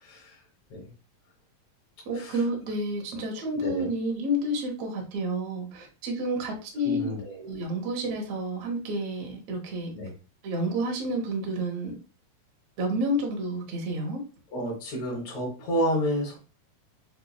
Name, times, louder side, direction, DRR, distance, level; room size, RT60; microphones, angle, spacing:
voice 1, 0.0-0.4 0.7-0.9 2.2-2.3 3.5-3.9 6.8-7.4 9.9-10.1 14.5-16.4, equal, 65° left, -3 dB, 2.0 m, -30 dB
voice 2, 2.0-7.1 7.4-9.9 10.4-11.9 12.8-14.2, equal, 75° right, 0 dB, 1.4 m, -30 dB
5.9 x 2.1 x 2.3 m, 0.34 s
omnidirectional pair, 4.0 m